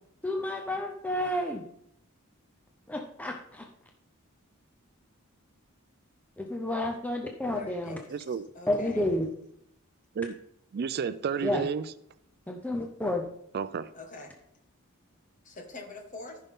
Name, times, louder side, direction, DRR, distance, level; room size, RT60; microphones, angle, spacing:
voice 1, 0.2-1.6 2.9-3.7 6.4-8.0 8.7-9.3 11.4-11.7 12.5-13.2, left 1 dB, 5° left, 0.6 m, -30 dB
voice 2, 7.6-9.1 13.9-14.3 15.4-16.4, left 3 dB, 35° left, 1.6 m, -44 dB
voice 3, 8.1-8.5 10.2-10.4 10.7-11.9 13.5-13.9, right 6 dB, 45° right, 0.4 m, -31 dB
14.5 x 5.6 x 3.6 m
head